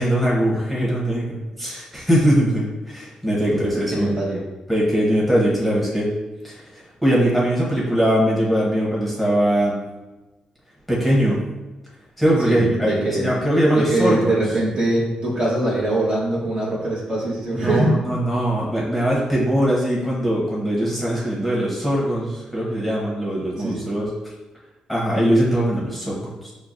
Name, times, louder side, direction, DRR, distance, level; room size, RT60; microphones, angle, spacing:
voice 1, 0.0-4.1 4.7-6.1 6.4-9.8 10.9-11.4 12.2-14.5 17.5-24.1 24.9-26.5, equal, ahead, -6 dB, 0.9 m, -21 dB
voice 2, 3.5-4.4 12.4-13.3 13.7-18.0 23.6-23.8, right 1 dB, 40° right, -5 dB, 1.0 m, -23 dB
5.6 x 2.1 x 2.5 m, 1.1 s
cardioid pair, 115°, 2 cm